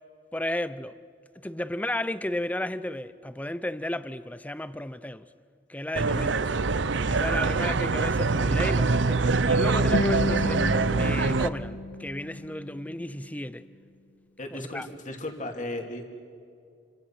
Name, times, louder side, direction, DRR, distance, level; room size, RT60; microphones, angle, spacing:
voice 1, 0.3-1.0 1.4-5.3 5.7-6.5 7.1-10.7 11.0-13.7 14.5-14.9, left 1 dB, 10° left, 0.7 m, -33 dB
sound 1, 5.9-11.5, right 3 dB, 85° right, 0.7 m, -24 dB
Guitar, 9.9-12.9, left 1 dB, 85° left, 1.1 m, -32 dB
voice 2, 14.4-16.1, left 1 dB, 45° left, 2.8 m, -36 dB
29.0 x 25.0 x 5.9 m
head